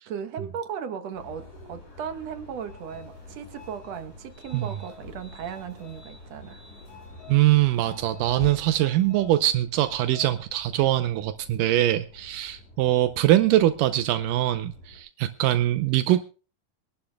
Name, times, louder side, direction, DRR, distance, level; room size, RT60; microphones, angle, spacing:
voice 1, 0.1-6.6, right 7 dB, 60° right, 2.0 m, -36 dB
sound 1, 1.1-15.0, left 2 dB, 80° left, 7.6 m, -46 dB
voice 2, 7.3-16.3, right 14 dB, 85° right, 2.3 m, -22 dB
24.5 x 11.5 x 2.2 m
omnidirectional pair, 3.8 m